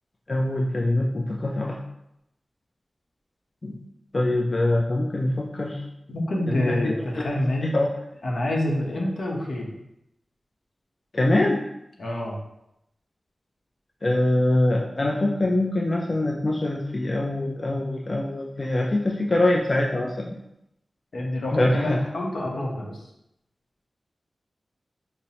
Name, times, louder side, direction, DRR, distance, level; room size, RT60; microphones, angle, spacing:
voice 1, 0.3-1.8 3.6-3.8 4.1-5.8 6.5-6.8 7.1-7.3 7.7-7.9 11.1-11.6 14.0-20.3 21.5-22.0, left 1 dB, 40° left, -2 dB, 0.4 m, -23 dB
voice 2, 6.1-7.8 8.2-9.8 12.0-12.4 21.1-23.0, left 1 dB, 80° left, -2 dB, 0.8 m, -27 dB
5.3 x 2.0 x 2.8 m, 0.82 s
wide cardioid pair, 95°, 0 cm